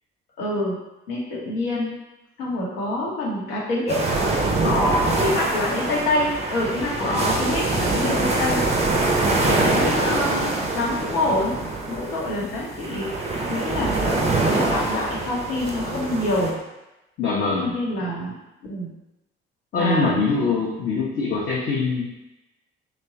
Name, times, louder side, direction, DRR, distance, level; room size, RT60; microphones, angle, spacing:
voice 1, 0.4-0.8 1.1-1.9 2.4-4.0 5.2-8.6 9.5-11.6 11.9-16.5 17.6-18.3 18.6-18.9 19.8-20.2, left 1 dB, 75° left, -5 dB, 0.8 m, -26 dB
sound 1, 3.9-16.5, right 2 dB, 20° right, 0.5 m, -24 dB
voice 2, 4.6-5.5 7.0-7.5 9.5-9.7 17.2-17.7 19.7-22.1, left 3 dB, 35° left, -4 dB, 0.6 m, -24 dB
2.9 x 2.2 x 2.7 m, 0.98 s
figure-of-eight pair, 50°, 30 cm